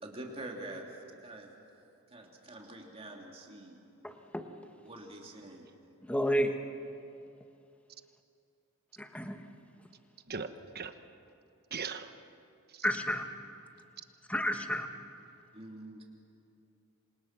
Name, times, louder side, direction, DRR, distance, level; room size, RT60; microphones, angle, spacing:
voice 1, 0.0-0.9 1.2-1.5 2.1-3.8 4.8-5.7 15.5-16.0, right 1 dB, 25° right, 0 dB, 3.0 m, -45 dB
voice 2, 4.0-4.4 6.1-6.6 9.0-9.4 12.8-13.3 14.3-14.9, equal, 5° left, 5 dB, 1.4 m, -31 dB
voice 3, 10.3-10.9 11.7-12.1 12.7-12.9, right 5 dB, 45° right, 9 dB, 1.1 m, -39 dB
28.0 x 26.0 x 6.0 m, 2.6 s
head